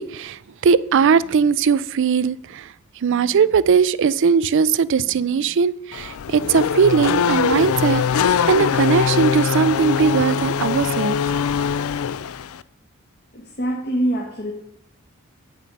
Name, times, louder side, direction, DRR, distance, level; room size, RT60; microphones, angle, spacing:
voice 1, 0.0-2.7 3.0-11.2, right 6 dB, 60° right, 0.4 m, -19 dB
Race car auto racing / Accelerating revving vroom, 5.9-12.6, left 7 dB, 80° left, 0.4 m, -22 dB
voice 2, 13.3-14.5, right 1 dB, 50° left, 1.5 m, -24 dB
8.8 x 7.3 x 5.3 m
head